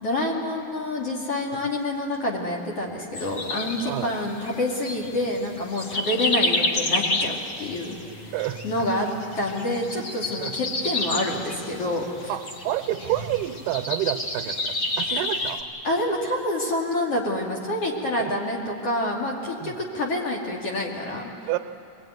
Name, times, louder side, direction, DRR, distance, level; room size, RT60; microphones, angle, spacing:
voice 1, 0.0-8.0 8.2-8.4 8.6-9.1 9.4-12.3 15.8-21.3, left 1 dB, 45° left, -2 dB, 3.1 m, -27 dB
sound 1, 3.1-15.6, left 2 dB, 85° left, 0.6 m, -30 dB
voice 2, 3.8-4.1 8.3-9.1 10.4-10.5 12.3-15.7 18.1-18.3 19.6-19.8 21.5-21.6, right 14 dB, 80° right, 8 dB, 2.3 m, -29 dB
23.5 x 20.5 x 9.4 m, 2.6 s
omnidirectional pair, 3.9 m